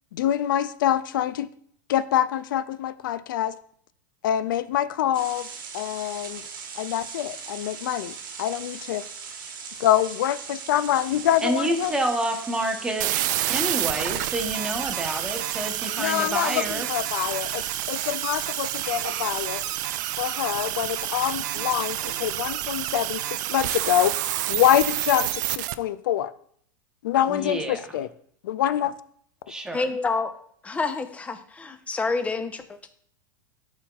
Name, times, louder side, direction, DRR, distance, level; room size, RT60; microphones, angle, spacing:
voice 1, 0.1-1.5 1.9-3.5 4.2-6.4 6.8-9.0 9.8-11.9 16.0-19.6 20.2-24.1 24.5-26.3 27.0-28.1 28.4-28.9, left 11 dB, 75° left, 14 dB, 0.5 m, -25 dB
sound 1, 5.1-22.2, right 6 dB, 90° right, 1.2 m, -39 dB
voice 2, 11.4-13.2 13.5-16.9 27.3-27.8 29.5-29.9, right 1 dB, 5° right, 3 dB, 1.1 m, -28 dB
sound 2, 13.0-25.7, right 15 dB, 65° right, 0.4 m, -29 dB
voice 3, 29.7-30.3 30.6-32.9, left 3 dB, 10° left, 8 dB, 0.7 m, -28 dB
11.5 x 4.3 x 2.4 m, 0.62 s
hypercardioid pair, 125°, 11 cm